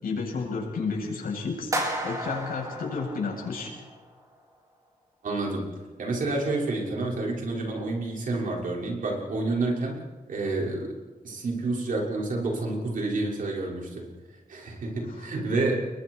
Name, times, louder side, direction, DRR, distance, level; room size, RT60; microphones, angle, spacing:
voice 1, 0.0-1.7 2.0-3.7 14.9-15.3, left 4 dB, 90° left, -2 dB, 7.8 m, -31 dB
sound 1, 1.7-4.0, right 1 dB, 20° right, 4.8 m, -33 dB
voice 2, 5.2-5.7 6.0-10.0 10.3-10.9 11.2-14.1 14.5-15.8, right 2 dB, 65° right, -2 dB, 6.1 m, -29 dB
29.5 x 22.5 x 4.8 m, 1.3 s
wide cardioid pair, 140°, 15 cm